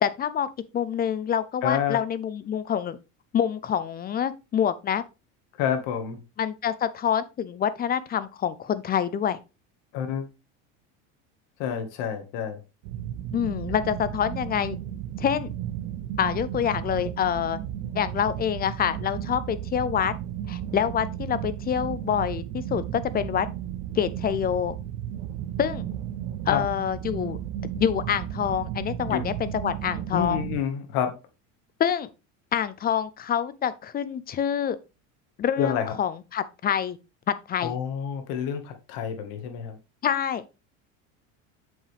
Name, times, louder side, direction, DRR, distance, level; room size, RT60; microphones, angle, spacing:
voice 1, 0.0-3.0 3.3-5.0 6.4-9.4 13.3-14.8 15.2-15.5 16.2-17.6 17.9-20.1 20.5-23.5 23.9-24.8 25.6-25.8 26.5-30.4 31.8-32.1 32.5-34.8 35.4-37.0 37.5-37.7 40.0-40.4, left 9 dB, 25° left, 0.5 m, -26 dB
voice 2, 1.6-2.0 5.6-6.2 9.9-10.3 11.6-12.6 26.5-26.6 29.1-29.2 30.1-31.1 35.6-35.9 37.6-39.8, left 8 dB, 70° left, 1.9 m, -28 dB
sound 1, 12.8-30.6, right 11 dB, 80° right, 0.9 m, -34 dB
7.4 x 5.5 x 3.4 m
cardioid pair, 135°, 38 cm